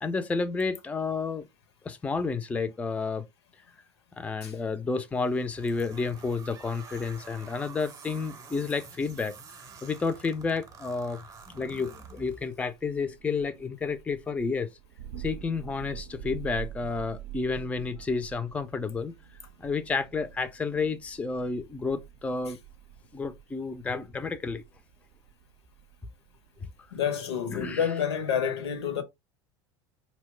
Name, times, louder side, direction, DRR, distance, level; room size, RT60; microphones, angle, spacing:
voice 1, 0.0-1.5 1.8-3.2 4.2-9.3 9.8-11.2 11.5-14.7 15.2-19.1 19.6-22.6 23.1-24.6 27.5-27.9, left 4 dB, 10° left, 0.3 m, -31 dB
sound 1, 5.1-12.7, right 5 dB, 30° right, 0.6 m, -49 dB
Thunder, 11.3-27.1, right 11 dB, 70° right, 0.5 m, -46 dB
voice 2, 26.9-29.0, left 8 dB, 85° left, 0.6 m, -28 dB
2.8 x 2.1 x 3.1 m
hypercardioid pair, 85°, 14 cm